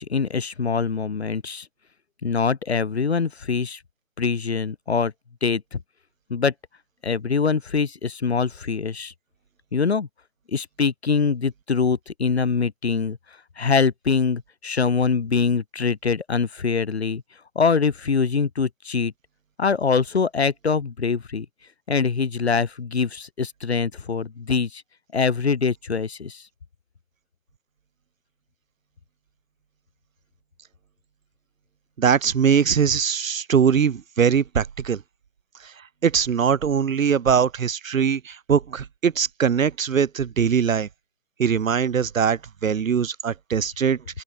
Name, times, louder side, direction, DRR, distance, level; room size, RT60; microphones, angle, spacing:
voice 1, 0.0-1.7 2.2-3.8 4.2-5.1 5.4-5.8 6.3-6.5 7.0-9.1 9.7-10.1 10.5-13.2 13.6-17.2 17.6-19.1 19.6-21.5 21.9-24.8 25.1-26.4, left 5 dB, 50° left, 2.2 m, -23 dB
voice 2, 32.0-35.0 35.6-35.7 36.0-40.9 41.4-44.2, right 7 dB, 80° right, 0.7 m, -21 dB
open air
figure-of-eight pair, 165°, 40 cm